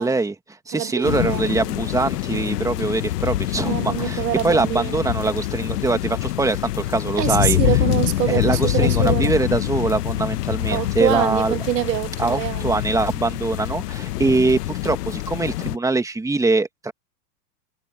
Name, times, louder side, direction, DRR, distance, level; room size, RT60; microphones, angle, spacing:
voice 1, 0.0-7.6 8.3-11.5 12.2-16.9, right 3 dB, 5° right, 2.0 m, -23 dB
voice 2, 0.7-1.5 3.6-5.0 7.2-9.3 10.7-12.8, right 12 dB, 85° right, 1.5 m, -25 dB
sound 1, 1.0-15.8, left 15 dB, 70° left, 1.0 m, -25 dB
hypercardioid pair, 125°, 49 cm